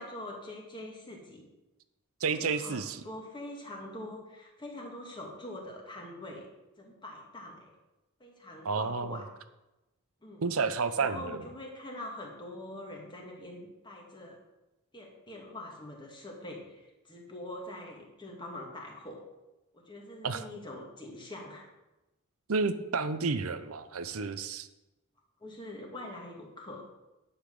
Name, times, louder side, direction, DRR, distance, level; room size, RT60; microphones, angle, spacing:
voice 1, 0.0-1.5 2.2-6.5 6.8-7.7 8.2-9.3 10.2-10.5 11.0-14.4 14.9-19.2 19.7-21.7 25.4-26.8, left 1 dB, 20° left, 0 dB, 1.9 m, -44 dB
voice 2, 2.2-3.0 8.6-9.2 10.4-11.4 20.2-20.4 22.5-24.7, right 4 dB, 75° right, 12 dB, 0.7 m, -30 dB
10.0 x 5.7 x 6.7 m, 1.0 s
head